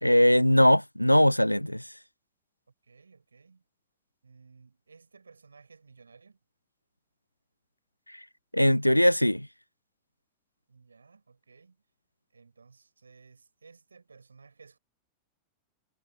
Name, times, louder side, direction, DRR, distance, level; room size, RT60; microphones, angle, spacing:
voice 1, 0.0-1.9 8.1-8.2 8.5-9.5, equal, 90° left, 0.8 m, -21 dB
voice 2, 2.8-3.6 4.2-6.4 10.7-11.8 12.3-14.8, right 4 dB, 75° right, 7.7 m, -56 dB
figure-of-eight pair, 90°, 0 cm